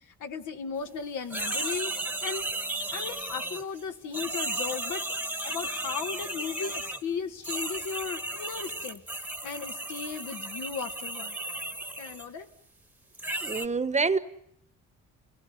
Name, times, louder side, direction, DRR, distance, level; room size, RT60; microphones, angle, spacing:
voice 1, 0.2-1.9 2.2-2.5 2.9-5.1 5.4-11.4 12.0-12.5, left 6 dB, 80° left, 1.9 m, -36 dB
sound 1, 1.3-3.8 4.1-7.0 7.4-12.3 13.2-13.7, right 1 dB, 5° right, 1.2 m, -34 dB
voice 2, 13.4-14.2, right 4 dB, 25° right, 1.1 m, -26 dB
28.0 x 19.0 x 9.4 m
cardioid pair, 90°, 30 cm